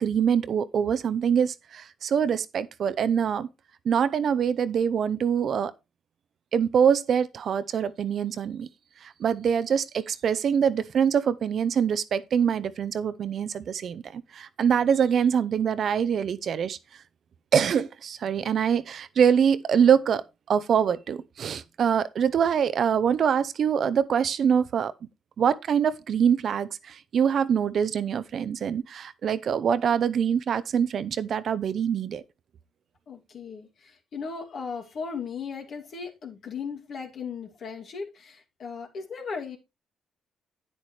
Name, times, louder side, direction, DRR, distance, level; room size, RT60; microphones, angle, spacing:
voice 1, 0.0-3.5 3.8-5.7 6.5-8.7 9.0-16.8 17.5-24.9 25.4-32.2, right 7 dB, 60° right, 0.7 m, -24 dB
voice 2, 33.1-39.6, left 5 dB, 60° left, 2.6 m, -37 dB
9.5 x 8.4 x 3.3 m
cardioid pair, 90°, 0 cm